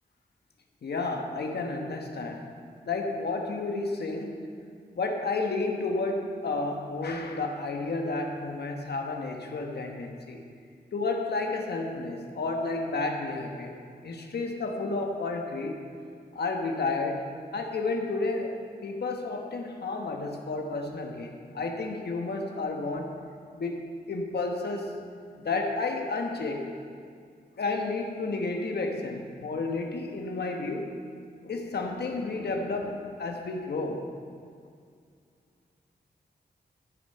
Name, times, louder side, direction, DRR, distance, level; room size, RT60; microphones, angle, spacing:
voice 1, 0.8-2.5 2.9-4.5 4.9-10.4 10.9-13.7 14.0-15.8 16.3-23.1 23.5-25.0 25.4-26.7 27.6-30.9 31.4-34.0, left 3 dB, 75° left, 2 dB, 1.2 m, -31 dB
13.0 x 7.5 x 5.5 m, 2.2 s
wide cardioid pair, 80°, 17 cm